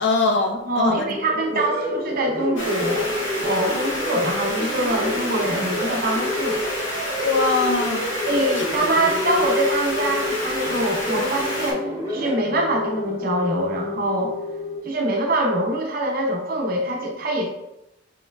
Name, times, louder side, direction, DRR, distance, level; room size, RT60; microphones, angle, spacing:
voice 1, 0.0-1.0 7.2-8.1, left 3 dB, 65° left, 4 dB, 0.5 m, -22 dB
voice 2, 0.6-3.1 3.4-6.6 8.3-14.4 14.8-17.5, right 1 dB, 50° right, 0 dB, 0.7 m, -24 dB
sound 1, 1.0-14.8, left 1 dB, 15° right, 0.9 m, -29 dB
sound 2, 2.6-11.7, left 1 dB, 80° left, 1.0 m, -29 dB
5.6 x 3.1 x 2.2 m, 0.92 s
head